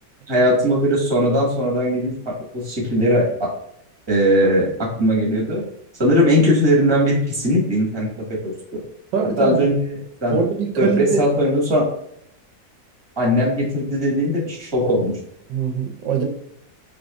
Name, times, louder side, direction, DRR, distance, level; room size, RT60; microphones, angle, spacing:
voice 1, 0.3-3.5 4.1-5.6 6.0-8.8 9.4-10.4 10.8-11.8 13.2-15.1, equal, 15° right, -3 dB, 1.6 m, -19 dB
voice 2, 9.1-9.6 10.3-11.2 15.5-16.2, right 6 dB, 85° right, 2 dB, 1.5 m, -22 dB
5.1 x 4.0 x 2.6 m, 0.72 s
omnidirectional pair, 1.9 m